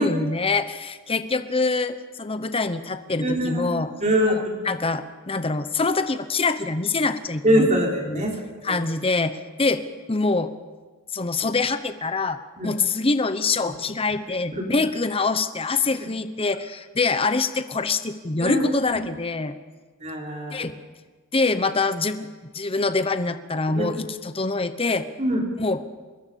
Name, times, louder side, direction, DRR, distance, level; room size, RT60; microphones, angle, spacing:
voice 1, 0.0-3.9 4.3-7.7 8.0-8.3 8.6-9.8 10.1-10.5 11.1-19.5 20.5-20.7 21.3-22.3 22.5-25.1 25.6-25.8, left 3 dB, 25° left, 10 dB, 1.0 m, -25 dB
voice 2, 3.2-4.7 7.4-8.4 8.7-8.8 12.6-12.7 13.6-13.7 14.5-14.7 18.4-19.0 20.0-20.6 23.7-23.9 25.2-25.4, equal, 35° right, 0 dB, 4.1 m, -23 dB
25.0 x 20.5 x 7.0 m, 1.4 s
head